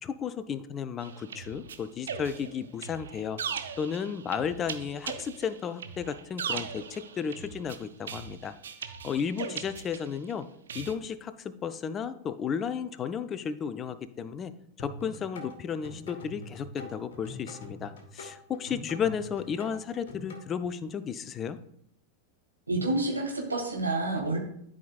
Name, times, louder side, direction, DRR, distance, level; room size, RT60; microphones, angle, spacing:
voice 1, 0.0-3.4 3.8-8.5 9.0-10.5 10.7-14.5 14.8-21.6, left 7 dB, 25° left, 12 dB, 0.5 m, -33 dB
sound 1, 1.0-10.3 10.7-10.9, right 7 dB, 65° right, 0.6 m, -39 dB
sound 2, 14.8-20.4, left 2 dB, 60° left, 1.4 m, -44 dB
voice 2, 22.7-24.4, right 2 dB, 80° right, -1 dB, 2.2 m, -28 dB
12.5 x 5.1 x 2.4 m, 0.70 s
figure-of-eight pair, 90°, 0 cm